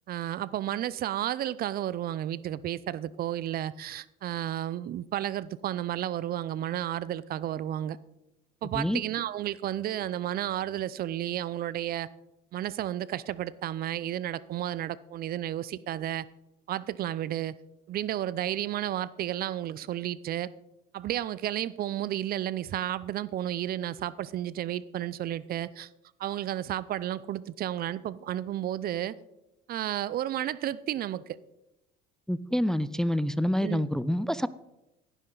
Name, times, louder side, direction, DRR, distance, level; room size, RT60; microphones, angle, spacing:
voice 1, 0.1-8.0 8.6-12.1 12.5-16.3 16.7-17.5 17.9-20.5 20.9-25.9 26.2-29.1 29.7-31.4 33.6-33.8, right 12 dB, 50° right, 0.5 m, -32 dB
voice 2, 32.3-34.5, equal, 5° left, 0.5 m, -27 dB
16.5 x 10.0 x 3.9 m
supercardioid pair, 85°, 19 cm